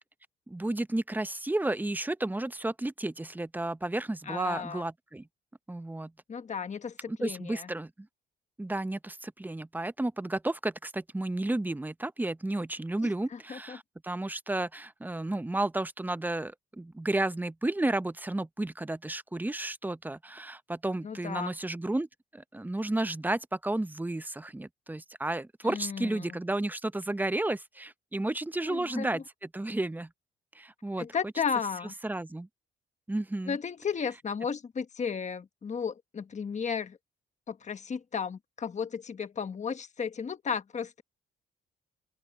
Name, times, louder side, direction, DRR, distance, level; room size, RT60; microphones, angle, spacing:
voice 1, 0.5-5.3 5.7-6.1 7.1-8.1 8.6-22.1 22.3-29.2 29.5-30.1 30.5-31.1 32.0-32.5 33.1-33.6, right 2 dB, 10° right, 0.7 m, -32 dB
voice 2, 4.3-4.8 6.3-7.7 13.0-13.8 21.0-21.5 25.6-26.4 28.6-29.2 31.0-31.9 33.5-37.0 37.5-41.0, left 6 dB, 35° left, 1.3 m, -34 dB
open air
cardioid pair, 90°, 20 cm